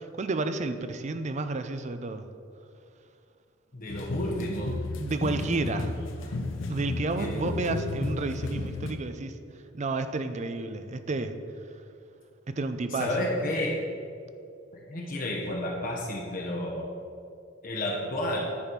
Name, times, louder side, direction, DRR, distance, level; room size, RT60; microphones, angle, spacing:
voice 1, 0.0-2.3 5.0-5.9 6.7-9.4 9.7-11.4 12.5-13.1, right 3 dB, 35° right, 9 dB, 0.5 m, -31 dB
voice 2, 3.7-4.8 7.2-7.6 12.9-13.8 14.7-16.9 17.6-18.4, left 1 dB, 45° left, -2 dB, 1.0 m, -31 dB
sound 1, 3.9-8.9, left 2 dB, 75° left, 0.7 m, -33 dB
9.7 x 4.2 x 6.0 m, 2.4 s
head